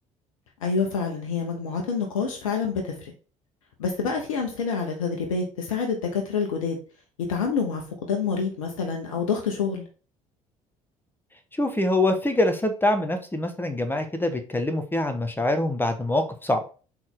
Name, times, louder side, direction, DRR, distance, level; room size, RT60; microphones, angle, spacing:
voice 1, 0.6-3.1 3.8-6.8 7.2-9.8, left 5 dB, 85° left, 2 dB, 1.1 m, -27 dB
voice 2, 11.6-16.6, left 1 dB, 10° left, 6 dB, 1.3 m, -24 dB
6.0 x 4.3 x 3.8 m, 0.35 s
hypercardioid pair, 60°, 17 cm